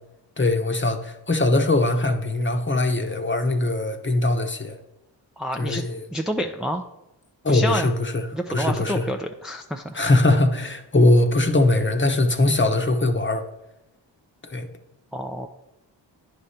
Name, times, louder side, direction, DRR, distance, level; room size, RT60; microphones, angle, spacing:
voice 1, 0.4-4.8 5.6-6.0 7.4-9.1 9.9-13.4 14.4-14.7, left 2 dB, 25° left, 5 dB, 1.0 m, -21 dB
voice 2, 5.4-5.8 6.1-6.9 7.5-7.9 8.3-10.0 15.1-15.5, equal, ahead, 3 dB, 0.5 m, -28 dB
9.3 x 5.1 x 4.3 m, 0.91 s
cardioid pair, 50°, 44 cm